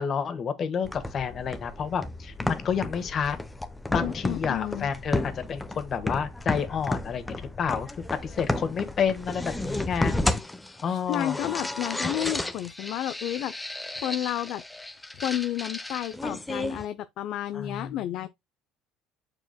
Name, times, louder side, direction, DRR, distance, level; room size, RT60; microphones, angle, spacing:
voice 1, 0.0-3.4 3.9-7.9 8.2-10.1 10.8-11.4 17.5-17.9, left 7 dB, 40° left, 1.5 m, -29 dB
sound 1, 0.8-16.8, left 2 dB, 10° left, 0.8 m, -33 dB
voice 2, 4.0-4.9 10.9-13.5 14.0-14.6 15.2-18.3, left 13 dB, 65° left, 0.5 m, -31 dB
7.0 x 6.7 x 2.2 m
supercardioid pair, 105°, 0 cm